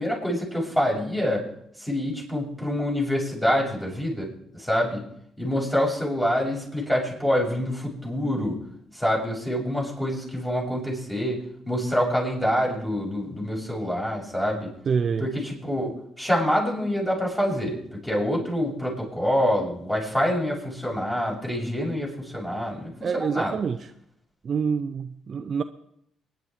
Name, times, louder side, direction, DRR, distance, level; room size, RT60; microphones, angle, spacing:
voice 1, 0.0-1.4 1.8-5.0 5.4-8.6 8.9-14.7 15.2-23.5, equal, 10° left, -3 dB, 7.0 m, -26 dB
voice 2, 14.9-15.3 23.0-23.9 24.4-25.6, right 6 dB, 50° right, 8 dB, 0.7 m, -26 dB
23.5 x 10.5 x 4.6 m, 0.73 s
cardioid pair, 90°, 0 cm